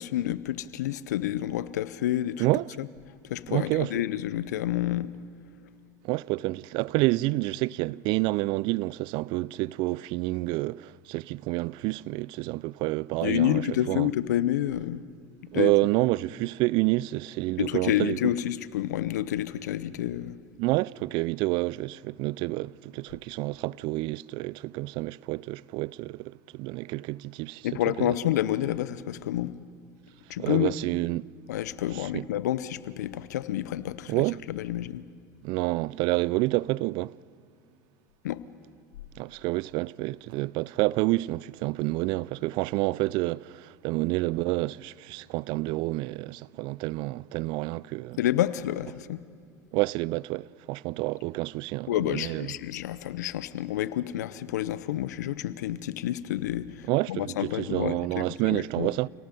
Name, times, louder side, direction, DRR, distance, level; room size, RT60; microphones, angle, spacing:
voice 1, 0.0-2.5 2.8-2.9 3.2-5.1 13.2-15.0 15.5-15.7 17.6-20.4 27.6-29.5 30.3-30.7 31.5-35.0 38.2-38.4 48.2-49.2 51.9-58.9, left 13 dB, 85° left, 0.8 m, -29 dB
voice 2, 3.5-4.0 6.0-13.6 13.9-14.1 15.5-18.3 20.6-27.7 28.0-28.1 30.4-31.2 32.0-32.3 34.1-34.4 35.4-37.2 39.2-48.2 49.7-52.5 56.9-59.1, right 21 dB, 60° right, 0.4 m, -28 dB
29.0 x 18.0 x 5.3 m
hypercardioid pair, 85°, 9 cm